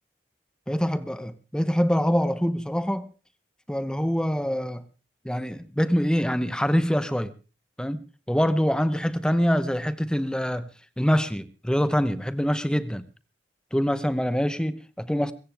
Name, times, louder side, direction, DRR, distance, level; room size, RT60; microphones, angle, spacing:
voice 1, 0.7-3.1 3.7-4.8 5.2-7.3 7.8-10.7 11.0-13.1 13.7-15.3, equal, 5° left, 0.8 m, -25 dB
23.5 x 14.5 x 3.4 m
head